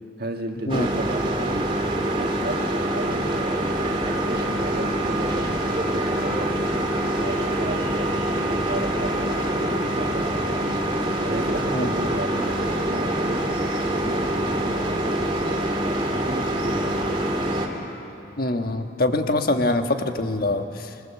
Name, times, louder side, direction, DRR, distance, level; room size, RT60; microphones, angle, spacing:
voice 1, 0.2-1.7 2.0-3.7 4.1-6.5 7.2-10.9 11.2-13.5 14.0-15.8 16.1-17.3, right 1 dB, 55° right, 3 dB, 2.0 m, -34 dB
sound 1, 0.7-17.7, right 1 dB, 30° right, 2.7 m, -25 dB
voice 2, 18.4-20.6, left 2 dB, 50° left, 5 dB, 1.4 m, -23 dB
29.0 x 22.0 x 7.4 m, 2.8 s
head